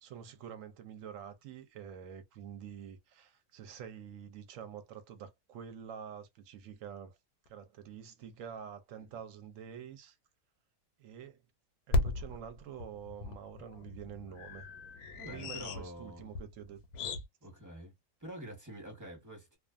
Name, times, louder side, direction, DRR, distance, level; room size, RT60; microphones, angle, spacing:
voice 1, 0.0-7.2 7.5-10.2 11.0-11.4 11.9-14.7 15.3-16.8, right 8 dB, 70° right, 0.9 m, -47 dB
sound 1, 7.5-7.6 8.2-8.3 8.6-8.7 11.9-17.2, left 2 dB, 90° left, 1.1 m, -36 dB
voice 2, 15.2-16.3 17.4-17.9 18.2-19.6, equal, 15° right, 0.9 m, -46 dB
2.4 x 2.4 x 2.4 m
omnidirectional pair, 1.5 m